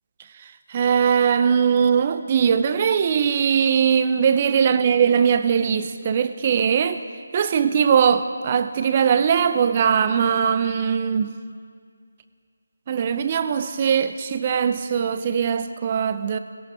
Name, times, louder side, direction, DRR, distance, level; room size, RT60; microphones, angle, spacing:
voice 1, 0.7-7.0 7.3-11.4 12.9-16.4, right 7 dB, 30° right, 0.7 m, -20 dB
17.5 x 16.5 x 5.0 m
figure-of-eight pair, 160°, 0 cm